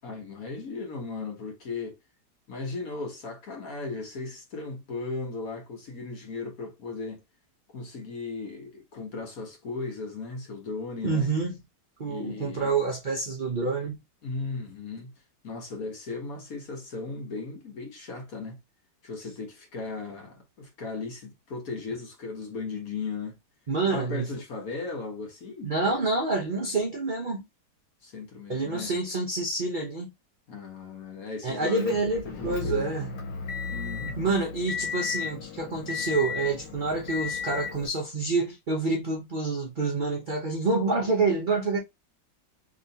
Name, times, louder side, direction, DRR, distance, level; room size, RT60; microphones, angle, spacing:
voice 1, 0.0-2.0 2.5-7.2 7.7-11.3 12.1-12.7 14.2-15.1 15.4-18.6 19.0-23.4 23.9-25.7 28.0-28.9 30.5-32.0 32.2-33.1 33.7-34.4, left 4 dB, 55° left, 1.3 m, -36 dB
voice 2, 11.0-11.6 12.0-14.0 23.7-24.3 25.6-27.5 28.5-30.1 31.4-33.1 34.2-41.8, right 3 dB, 80° right, 0.4 m, -27 dB
Motor vehicle (road) / Engine, 31.8-37.9, left 5 dB, 90° left, 1.5 m, -34 dB
3.1 x 3.0 x 2.6 m
omnidirectional pair, 1.9 m